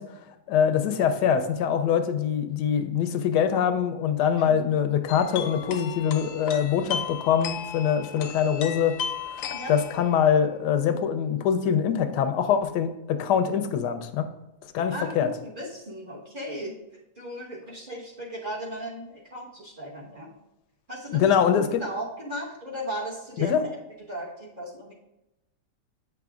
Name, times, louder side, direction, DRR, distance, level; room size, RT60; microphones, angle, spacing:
voice 1, 0.0-8.9 9.3-14.3 14.6-15.3 21.1-21.8 23.4-23.6, left 8 dB, 85° left, 8 dB, 1.2 m, -24 dB
sound 1, 5.1-10.3, left 7 dB, 65° left, 0.9 m, -35 dB
voice 2, 14.9-16.7 17.2-20.3 20.9-23.5 24.1-24.9, equal, 35° right, -4 dB, 1.2 m, -36 dB
8.3 x 5.9 x 2.4 m, 0.92 s
omnidirectional pair, 1.8 m